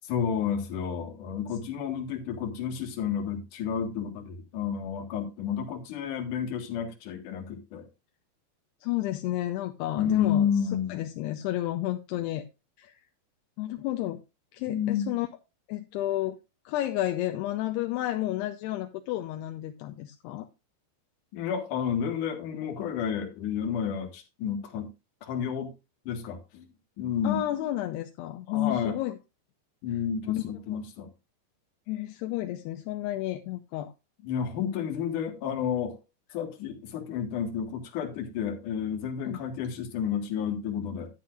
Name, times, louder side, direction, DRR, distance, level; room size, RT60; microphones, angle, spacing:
voice 1, 0.0-7.9 10.0-11.0 14.7-15.2 21.3-24.9 25.2-25.7 26.1-26.6 27.0-27.4 28.5-29.0 29.8-31.1 34.2-36.0 36.3-41.1, left 8 dB, 55° left, 2.8 m, -31 dB
voice 2, 8.8-10.5 10.9-12.4 12.8-13.0 13.6-14.2 14.5-15.3 15.7-16.4 16.7-20.5 27.2-29.2 30.3-30.4 31.9-33.9 39.3-39.4, left 14 dB, 80° left, 2.6 m, -31 dB
11.0 x 10.0 x 2.5 m
omnidirectional pair, 5.1 m